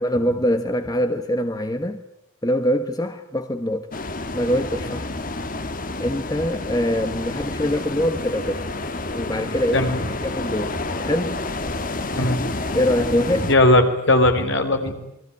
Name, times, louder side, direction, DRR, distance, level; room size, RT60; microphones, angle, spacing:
voice 1, 0.0-2.0 2.4-3.9 4.3-5.1 6.0-8.7 9.1-9.9 10.2-11.4 12.7-13.5, equal, 20° left, 1.3 m, -24 dB
sound 1, 3.9-13.5, left 2 dB, 40° left, 1.5 m, -29 dB
voice 2, 9.7-10.0 12.2-12.4 13.5-15.0, left 1 dB, 60° left, 4.4 m, -18 dB
28.5 x 21.5 x 9.7 m
head